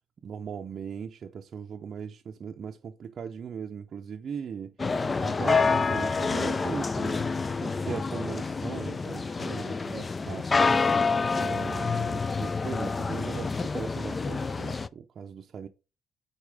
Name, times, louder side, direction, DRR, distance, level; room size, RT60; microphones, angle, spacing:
voice 1, 0.2-4.8 5.2-7.2 7.6-10.8 11.3-15.7, right 7 dB, 55° right, 0.5 m, -39 dB
sound 1, 4.8-14.9, left 4 dB, 30° left, 0.4 m, -27 dB
8.6 x 4.2 x 3.4 m
cardioid pair, 90°, 0 cm